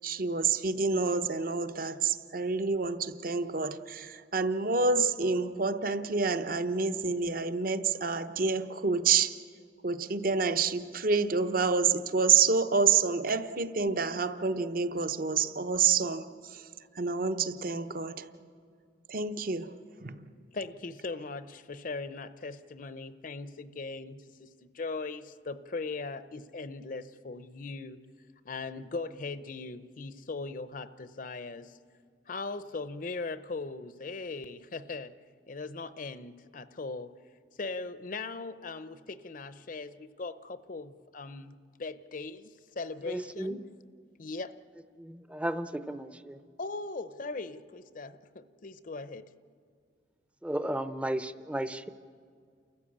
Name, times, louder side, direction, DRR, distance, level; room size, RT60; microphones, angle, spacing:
voice 1, 0.0-9.4 9.8-16.7 16.9-18.3 19.1-19.7 20.0-20.3, right 5 dB, 50° right, 10 dB, 0.9 m, -28 dB
voice 2, 20.5-28.0 28.4-31.8 32.3-35.1 35.5-37.1 37.6-43.6 44.2-44.5 46.6-49.3, left 3 dB, 50° left, 13 dB, 0.7 m, -39 dB
voice 3, 43.1-43.6 45.0-46.4 50.4-51.9, right 1 dB, 5° right, 13 dB, 0.6 m, -34 dB
29.0 x 14.5 x 8.6 m, 2.2 s
head